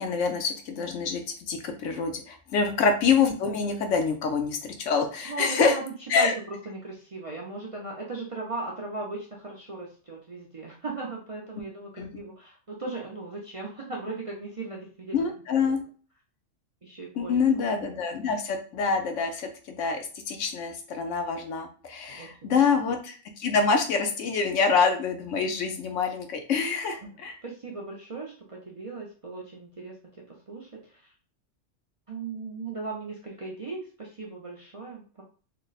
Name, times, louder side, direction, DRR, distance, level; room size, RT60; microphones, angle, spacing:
voice 1, 0.0-5.8 6.1-6.3 12.0-12.1 15.1-15.8 17.2-27.4, left 5 dB, 75° left, 5 dB, 1.0 m, -26 dB
voice 2, 5.2-5.8 6.2-15.3 15.6-15.8 16.8-17.4 22.1-22.7 27.0-27.1 27.4-29.9 30.3-31.1 32.1-35.0, right 3 dB, 40° right, -2 dB, 0.5 m, -37 dB
3.3 x 2.1 x 3.9 m, 0.40 s
omnidirectional pair, 1.3 m